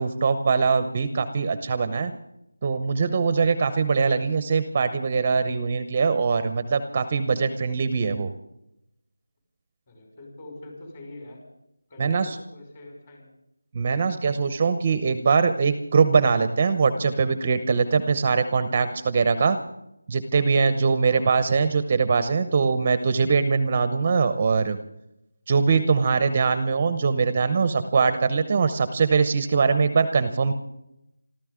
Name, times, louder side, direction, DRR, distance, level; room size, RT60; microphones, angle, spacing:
voice 1, 0.0-2.1 2.6-8.3 12.0-12.4 13.7-19.6 20.1-24.8 25.5-30.5, right 5 dB, 25° right, 11 dB, 0.8 m, -22 dB
voice 2, 9.9-11.4 11.9-13.3 21.0-21.4, left 2 dB, 25° left, 1 dB, 5.5 m, -44 dB
26.5 x 14.0 x 3.7 m, 0.85 s
figure-of-eight pair, 170°, 0 cm